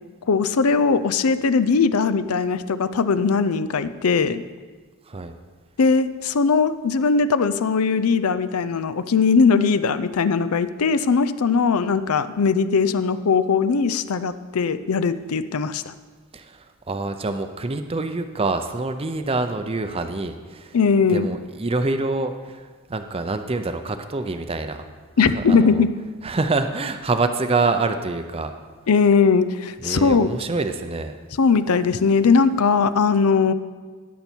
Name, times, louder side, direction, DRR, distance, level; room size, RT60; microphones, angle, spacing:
voice 1, 0.3-4.4 5.8-15.9 20.7-21.3 25.2-25.9 28.9-30.3 31.4-33.5, left 5 dB, 85° left, 13 dB, 0.5 m, -19 dB
voice 2, 16.3-20.8 21.1-24.8 25.2-25.8 26.2-28.5 29.8-31.2, right 3 dB, 25° right, 8 dB, 0.6 m, -26 dB
17.5 x 6.9 x 4.5 m, 1.5 s
head